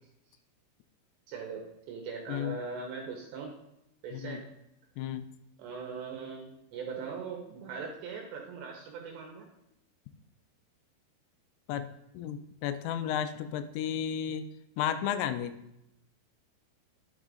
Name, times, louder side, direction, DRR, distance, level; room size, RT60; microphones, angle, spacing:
voice 1, 1.3-3.6 4.0-4.5 5.6-9.5, right 5 dB, 75° right, 1 dB, 2.7 m, -40 dB
voice 2, 11.7-14.5 14.8-15.6, left 9 dB, 85° left, 10 dB, 3.1 m, -33 dB
10.5 x 6.4 x 2.5 m, 0.84 s
omnidirectional pair, 5.9 m